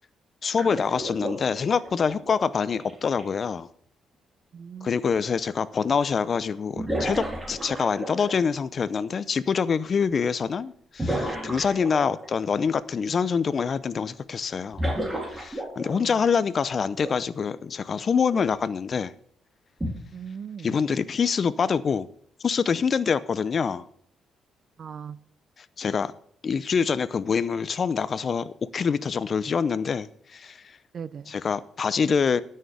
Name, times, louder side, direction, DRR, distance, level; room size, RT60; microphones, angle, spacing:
voice 1, 0.4-3.7 4.8-14.8 15.3-19.1 20.6-22.1 22.4-23.9 25.8-26.1 26.4-30.6 31.3-32.4, left 6 dB, 45° left, 0.6 m, -25 dB
sound 1, 0.5-3.2 5.2-5.3 6.7-8.5 11.0-12.3 14.7-16.2 17.0-17.2 18.3-18.5 19.8-19.9, right 1 dB, 15° right, 3.4 m, -32 dB
voice 2, 4.5-4.9 15.9-16.2 20.1-20.8 24.8-25.2 30.9-31.4, right 7 dB, 50° right, 0.5 m, -39 dB
13.0 x 6.6 x 6.8 m
cardioid pair, 90°, 0 cm